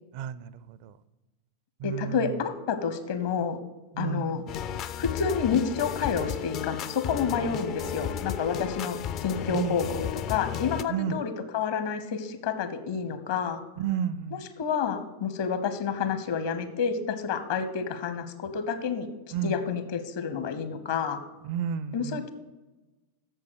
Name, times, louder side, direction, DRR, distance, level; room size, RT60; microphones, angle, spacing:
voice 1, 0.1-0.5 0.8-0.9 1.8-2.2 4.0-4.4 9.5-9.7 10.9-11.1 13.8-14.4 19.3-19.5 21.5-22.2, right 9 dB, 45° right, 17 dB, 0.4 m, -31 dB
voice 2, 1.8-3.6 4.0-4.4 5.0-13.6 14.3-19.1 19.4-21.2 21.9-22.3, left 6 dB, 50° left, 10 dB, 1.0 m, -29 dB
sound 1, 4.5-10.8, left 9 dB, 35° left, 0.4 m, -33 dB
7.8 x 6.9 x 6.4 m, 1.1 s
figure-of-eight pair, 90°, 0 cm